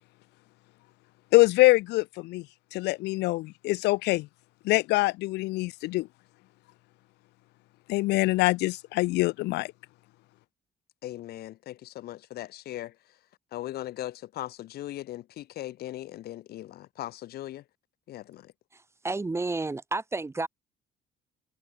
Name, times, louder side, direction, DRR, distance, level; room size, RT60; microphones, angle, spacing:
voice 1, 1.3-2.5 2.7-4.3 4.6-6.1 7.9-9.7, left 20 dB, 85° left, 0.9 m, -24 dB
voice 2, 11.0-13.0 13.5-17.6 18.1-18.5, left 14 dB, 65° left, 1.3 m, -39 dB
voice 3, 18.7-20.5, right 3 dB, 15° right, 1.7 m, -31 dB
cardioid pair, 110°, 17 cm